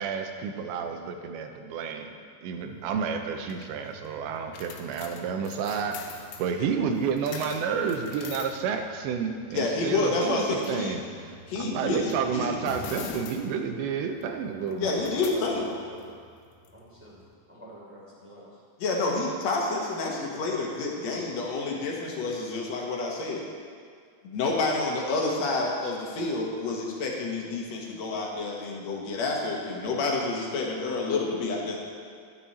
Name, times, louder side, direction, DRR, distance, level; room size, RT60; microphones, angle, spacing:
voice 1, 0.0-2.1 2.4-11.0 11.6-15.0, right 6 dB, 85° right, 5 dB, 3.1 m, -30 dB
sound 1, 2.6-17.3, left 5 dB, 80° left, 3.0 m, -45 dB
voice 2, 9.5-10.9 11.5-12.5 14.8-15.7 18.8-23.4 24.2-31.8, left 3 dB, 60° left, -1 dB, 1.8 m, -29 dB
voice 3, 14.4-14.8 15.2-16.2 16.7-17.2 17.5-18.5, right 1 dB, 5° right, -6 dB, 2.2 m, -45 dB
14.5 x 10.5 x 4.2 m, 2.1 s
omnidirectional pair, 5.0 m